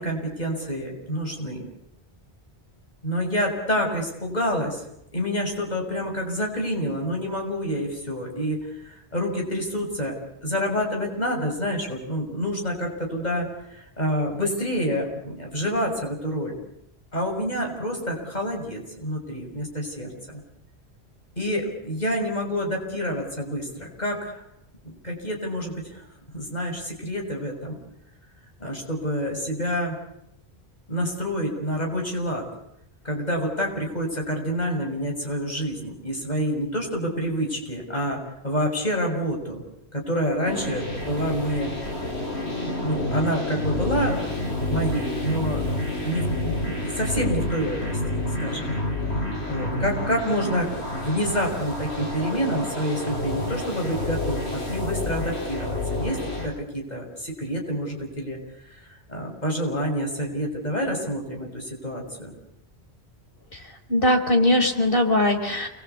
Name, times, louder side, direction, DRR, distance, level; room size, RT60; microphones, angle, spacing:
voice 1, 0.0-1.6 3.0-4.8 5.1-10.2 10.4-16.5 17.1-20.4 21.4-24.4 24.8-26.0 26.3-27.8 28.6-30.0 30.9-32.4 33.0-39.6 39.9-41.7 42.4-45.7 46.0-48.7 49.4-58.4 58.7-62.3, equal, 40° left, 0 dB, 6.9 m, -28 dB
sound 1, 40.5-56.5, left 1 dB, 80° left, 7.5 m, -29 dB
voice 2, 63.9-65.7, left 1 dB, 55° left, 4 dB, 4.7 m, -20 dB
29.5 x 22.5 x 8.4 m, 0.82 s
omnidirectional pair, 1.1 m